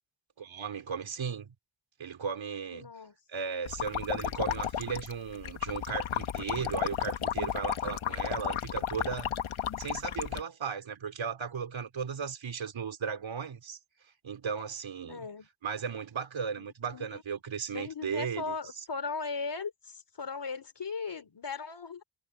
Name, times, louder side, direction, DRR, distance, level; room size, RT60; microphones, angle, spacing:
voice 1, 0.4-1.5 2.0-2.9 3.3-9.3 9.8-13.8 14.2-15.3 15.6-18.8, right 6 dB, 75° right, 3.0 m, -36 dB
voice 2, 2.7-3.1 15.1-15.5 16.6-16.7 16.9-17.2 17.7-22.0, left 4 dB, 60° left, 3.9 m, -38 dB
sound 1, 3.7-10.4, left 9 dB, 90° left, 1.5 m, -33 dB
cardioid pair, 55°, 47 cm